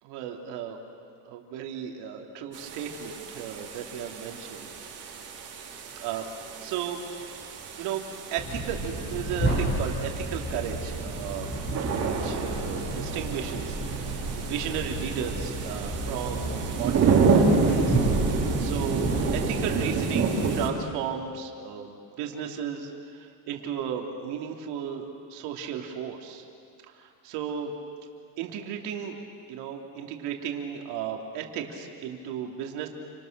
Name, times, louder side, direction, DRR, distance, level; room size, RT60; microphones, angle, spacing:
voice 1, 0.0-0.8 1.2-4.7 4.9-5.2 6.0-6.2 6.6-7.0 7.8-11.5 12.0-18.0 18.6-26.4 26.9-27.7 28.4-29.2 29.5-32.9, right 8 dB, 55° right, 2 dB, 3.3 m, -35 dB
sound 1, 2.5-20.7, right 4 dB, 30° right, 4.0 m, -29 dB
sound 2, 8.4-19.9, right 1 dB, 25° left, 7.5 m, -32 dB
29.0 x 26.0 x 6.8 m, 2.3 s
cardioid pair, 165°, 46 cm